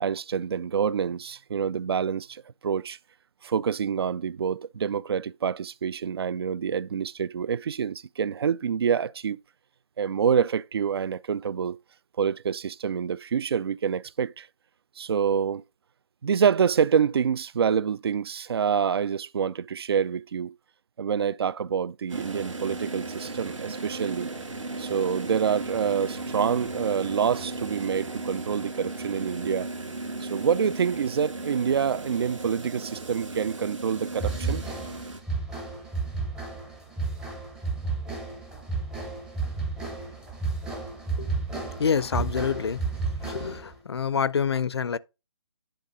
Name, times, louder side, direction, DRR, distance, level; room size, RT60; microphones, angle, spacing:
voice 1, 0.0-3.0 3.4-9.4 10.0-11.8 12.2-14.5 15.0-15.6 16.2-20.5 21.0-24.3 24.8-29.7 30.2-34.6, right 7 dB, 55° right, 0.4 m, -27 dB
sound 1, 22.1-35.2, right 2 dB, 85° right, 2.2 m, -36 dB
sound 2, 34.2-43.7, right 4 dB, 5° right, 0.6 m, -32 dB
voice 2, 41.2-42.9 43.2-45.0, left 6 dB, 55° left, 0.5 m, -27 dB
10.0 x 3.7 x 5.2 m
hypercardioid pair, 160°, 16 cm